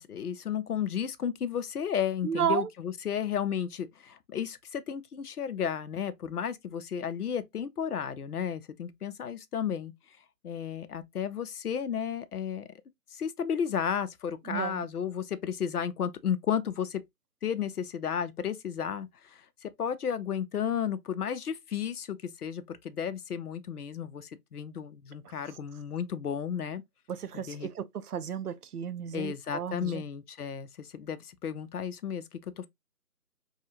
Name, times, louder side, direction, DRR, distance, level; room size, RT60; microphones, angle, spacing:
voice 1, 0.0-9.9 10.4-12.7 13.1-17.0 17.4-26.8 27.3-27.7 29.1-32.7, left 8 dB, 70° left, 0.6 m, -33 dB
voice 2, 2.2-2.7 14.5-14.8 27.1-27.8 28.1-30.0, right 8 dB, 70° right, 0.5 m, -32 dB
2.7 x 2.3 x 2.7 m
figure-of-eight pair, 165°, 47 cm